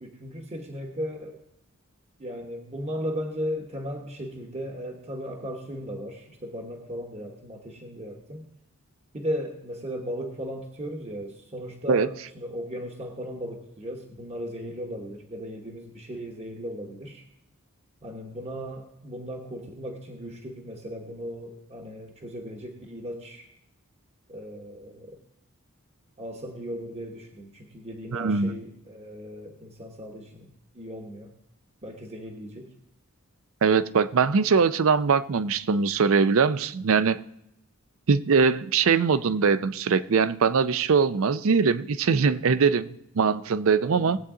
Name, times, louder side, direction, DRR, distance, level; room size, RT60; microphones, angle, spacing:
voice 1, 0.0-1.4 2.2-8.5 9.1-17.2 18.0-23.5 24.3-25.2 26.2-30.5 30.7-31.3 31.8-32.7 43.8-44.1, equal, 30° right, 2 dB, 1.1 m, -36 dB
voice 2, 28.1-28.6 33.6-37.2 38.1-44.2, right 5 dB, 65° right, 15 dB, 0.5 m, -22 dB
18.5 x 8.2 x 3.7 m, 0.82 s
head